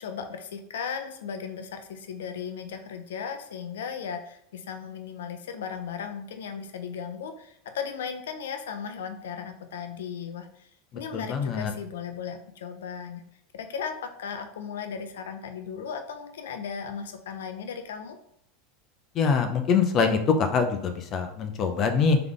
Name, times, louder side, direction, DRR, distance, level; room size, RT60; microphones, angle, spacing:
voice 1, 0.0-10.7 10.9-13.2 13.5-18.2, left 6 dB, 85° left, 7 dB, 0.6 m, -36 dB
voice 2, 11.1-11.7 19.2-22.2, left 5 dB, 40° left, 6 dB, 0.6 m, -24 dB
3.6 x 3.4 x 3.8 m, 0.72 s
hypercardioid pair, 110°, 0 cm